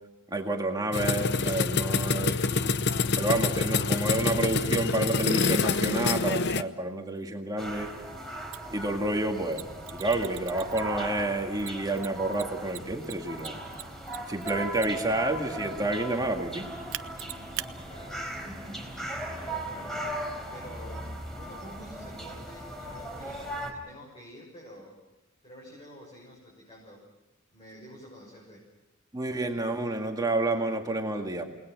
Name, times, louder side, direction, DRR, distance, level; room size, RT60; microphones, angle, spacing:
voice 1, 0.3-2.7 3.2-7.9 8.7-13.6 14.3-16.7 29.1-31.4, right 2 dB, 20° right, 3 dB, 2.1 m, -29 dB
sound 1, 0.9-6.6, left 4 dB, 50° left, 0.8 m, -26 dB
sound 2, 7.6-23.7, right 1 dB, ahead, 4.3 m, -38 dB
Mechanisms, 8.5-8.6 9.5-11.1 11.6-15.1 16.9-17.7, right 14 dB, 65° right, 0.8 m, -39 dB
voice 2, 17.2-25.0 25.4-27.1 27.5-28.7, equal, 30° left, -4 dB, 7.0 m, -49 dB
29.5 x 19.5 x 6.1 m, 0.98 s
head